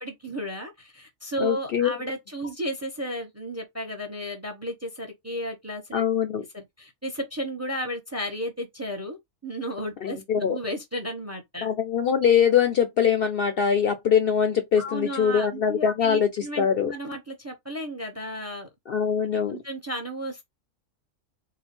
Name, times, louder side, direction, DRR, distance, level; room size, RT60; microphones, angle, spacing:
voice 1, 0.0-6.0 6.5-11.7 14.8-18.7 19.5-20.4, equal, 15° right, 0.7 m, -34 dB
voice 2, 1.4-1.9 5.9-6.5 10.0-10.6 11.6-16.9 18.9-19.6, left 7 dB, 60° left, 0.7 m, -23 dB
3.8 x 2.1 x 4.2 m
omnidirectional pair, 1.4 m